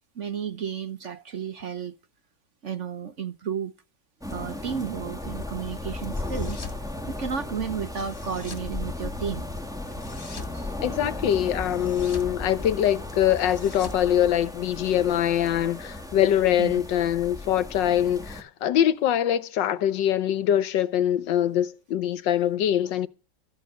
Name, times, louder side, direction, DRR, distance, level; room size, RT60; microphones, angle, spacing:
voice 1, 0.1-2.0 2.6-3.7 4.3-6.7 7.1-9.5 10.5-10.7 16.6-16.7, right 7 dB, 50° right, 1.0 m, -32 dB
sound 1, 4.2-18.4, left 2 dB, ahead, 2.0 m, -36 dB
sound 2, 6.1-6.8 8.0-8.7 9.8-10.6 11.6-12.3 13.3-14.8, left 3 dB, 35° left, 2.3 m, -43 dB
voice 2, 10.8-23.1, left 10 dB, 80° left, 1.5 m, -23 dB
14.0 x 9.3 x 6.4 m
omnidirectional pair, 1.9 m